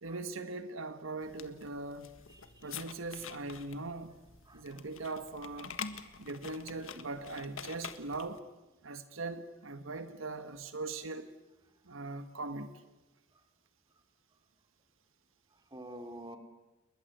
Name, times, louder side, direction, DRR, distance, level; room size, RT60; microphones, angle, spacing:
voice 1, 0.0-2.1 2.6-4.1 4.5-5.8 6.2-8.4 8.8-11.3 11.8-12.7, right 3 dB, 80° right, 1.5 m, -40 dB
sound 1, 1.2-8.4, left 6 dB, 90° left, 1.7 m, -47 dB
voice 2, 2.3-2.8 4.4-4.8 11.9-12.0 15.5-16.4, right 1 dB, 20° right, 3.2 m, -49 dB
29.5 x 22.0 x 8.0 m
head